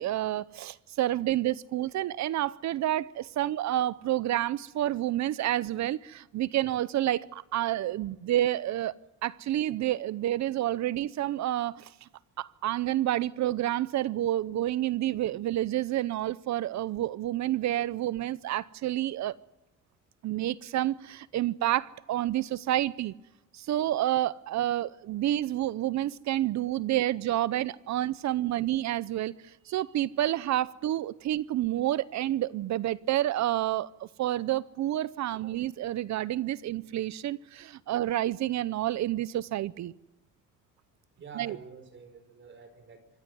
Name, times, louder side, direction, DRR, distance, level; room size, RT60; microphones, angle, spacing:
voice 1, 0.0-8.9 9.2-12.1 12.4-19.3 20.2-23.1 23.5-29.3 29.7-39.9 41.4-41.6, right 13 dB, 60° right, 0.7 m, -29 dB
voice 2, 29.7-30.0 35.4-35.5 41.2-43.1, right 5 dB, 40° right, 4.7 m, -48 dB
26.0 x 14.5 x 9.5 m
cardioid pair, 150°, 31 cm